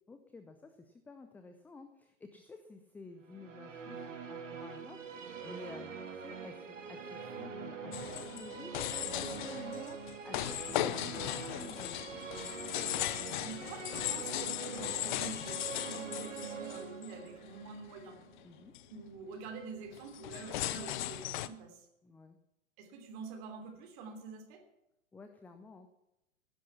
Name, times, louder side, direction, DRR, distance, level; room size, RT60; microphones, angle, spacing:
voice 1, 0.1-5.0 5.4-8.8 9.0-10.0 10.2-12.0 18.4-18.7 22.0-22.4 25.1-25.9, left 3 dB, 5° left, 8 dB, 0.5 m, -52 dB
Musical instrument, 3.3-18.7, right 5 dB, 65° right, 2.3 m, -44 dB
sound 1, 7.9-17.3 17.7-18.0 18.4-18.5 18.7-19.0 19.9-21.5, left 14 dB, 35° left, 0.7 m, -38 dB
voice 2, 13.4-18.2 18.9-21.9 22.8-24.6, right 4 dB, 35° right, 2 dB, 3.2 m, -47 dB
17.0 x 11.0 x 5.9 m, 0.90 s
figure-of-eight pair, 105°, 40 cm